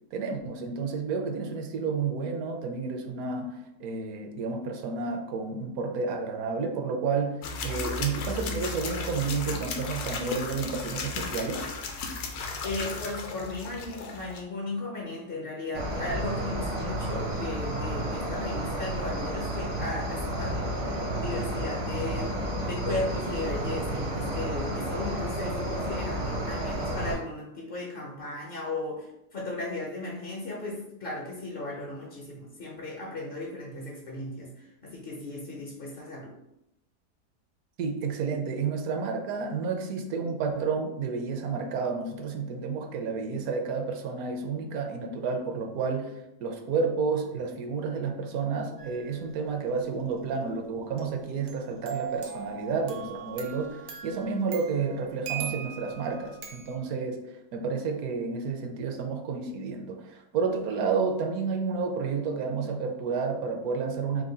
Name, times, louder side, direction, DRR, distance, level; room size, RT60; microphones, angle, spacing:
voice 1, 0.1-11.7 37.8-64.2, right 5 dB, 70° right, 4 dB, 1.0 m, -31 dB
sound 1, 7.4-14.4, left 4 dB, 75° left, 1.1 m, -35 dB
voice 2, 12.6-36.3, left 2 dB, 60° left, -2 dB, 0.6 m, -36 dB
Cricket, 15.7-27.1, right 1 dB, 45° right, 0.5 m, -31 dB
sound 2, 48.8-49.2 51.0-56.8, right 8 dB, 90° right, 1.4 m, -40 dB
4.7 x 2.2 x 3.8 m, 0.86 s
omnidirectional pair, 1.8 m